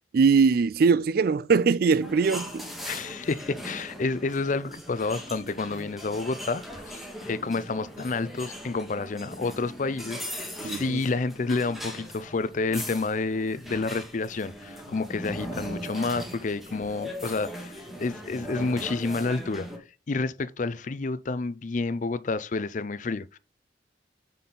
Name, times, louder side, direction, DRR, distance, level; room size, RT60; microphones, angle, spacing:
voice 1, 0.1-2.7 10.6-11.0, right 5 dB, 55° right, 0.3 m, -21 dB
sound 1, 2.0-19.8, equal, ahead, 1.6 m, -39 dB
voice 2, 2.8-19.7 20.1-23.4, left 3 dB, 45° left, 0.5 m, -29 dB
9.1 x 4.3 x 3.9 m
head